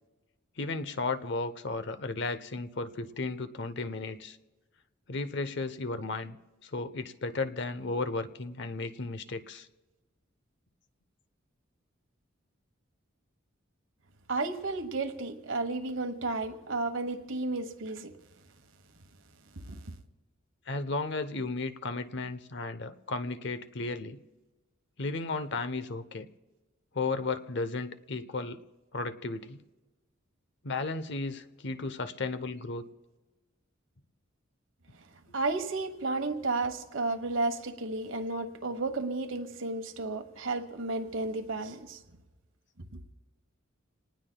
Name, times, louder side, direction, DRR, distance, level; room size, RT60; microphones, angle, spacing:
voice 1, 0.6-4.4 5.1-6.4 6.6-9.7 20.7-24.2 25.0-26.3 26.9-28.6 28.9-29.6 30.6-32.9, left 3 dB, 60° left, 0.8 m, -34 dB
voice 2, 14.3-18.1 19.6-19.9 35.3-42.0, right 3 dB, 70° right, 1.2 m, -32 dB
28.0 x 19.0 x 2.3 m
head